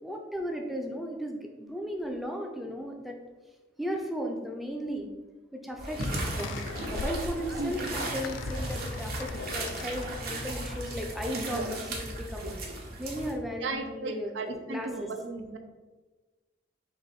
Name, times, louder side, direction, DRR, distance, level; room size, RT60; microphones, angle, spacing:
voice 1, 0.0-3.2 3.8-5.1 5.5-12.5 13.0-15.1, equal, ahead, 1 dB, 0.4 m, -36 dB
sound 1, 5.8-13.3, right 1 dB, 50° right, 0.9 m, -36 dB
sound 2, 6.0-11.3, left 4 dB, 90° left, 0.3 m, -41 dB
voice 2, 11.3-11.7 12.4-12.7 13.6-15.6, right 3 dB, 85° right, 6 dB, 0.5 m, -36 dB
4.7 x 2.6 x 4.1 m, 1.3 s
head